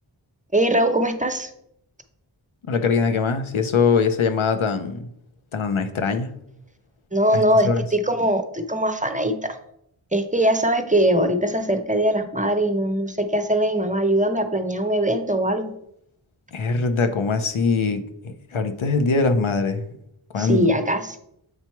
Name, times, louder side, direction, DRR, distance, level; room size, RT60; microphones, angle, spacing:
voice 1, 0.5-1.5 7.1-9.6 10.1-15.7 20.4-21.2, right 1 dB, 15° right, 0.6 m, -21 dB
voice 2, 2.7-5.1 5.5-6.3 7.3-7.8 16.5-19.8 20.3-20.7, left 4 dB, 90° left, 0.7 m, -22 dB
8.1 x 2.9 x 4.5 m
wide cardioid pair, 40°, 47 cm